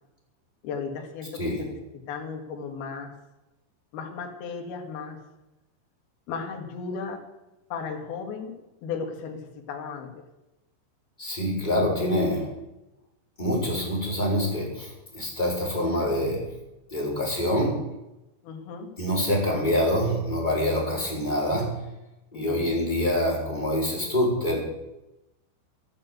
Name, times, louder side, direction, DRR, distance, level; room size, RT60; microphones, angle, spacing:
voice 1, 0.6-1.8 2.1-3.1 3.9-5.2 6.3-7.2 7.7-8.5 8.8-9.4 9.7-10.1 18.4-18.9 22.3-22.7, left 5 dB, 60° left, 2 dB, 3.8 m, -35 dB
voice 2, 11.2-12.5 13.4-16.4 16.9-17.8 19.0-21.8 22.3-24.6, left 1 dB, 10° left, -3 dB, 4.3 m, -25 dB
14.5 x 10.5 x 8.2 m, 0.95 s
omnidirectional pair, 5.2 m